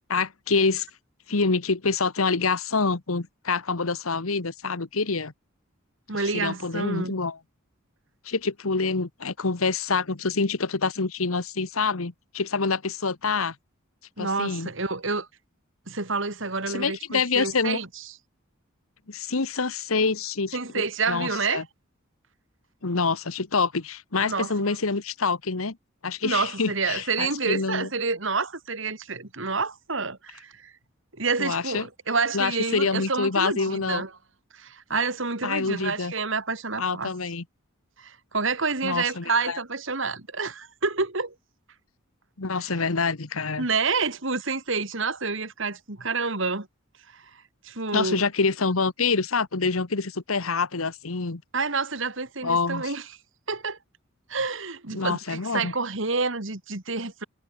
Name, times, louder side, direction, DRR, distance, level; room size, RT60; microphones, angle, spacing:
voice 1, 0.1-0.9 1.3-5.3 6.1-7.4 8.2-13.5 14.2-14.7 16.7-17.8 19.1-21.6 22.8-25.8 26.0-27.9 31.4-31.9 32.3-34.0 35.4-36.1 36.8-37.4 38.8-39.6 42.4-43.7 47.9-51.4 52.4-52.9 54.9-55.7, left 4 dB, 85° left, 1.4 m, -26 dB
voice 2, 6.1-7.1 14.2-15.3 15.9-17.9 20.5-21.6 24.2-24.5 26.2-30.7 31.2-34.1 34.5-37.1 38.0-41.3 43.6-46.7 47.1-47.2 47.6-48.2 51.5-53.0 53.5-53.8 54.3-57.2, right 4 dB, 65° right, 2.6 m, -28 dB
head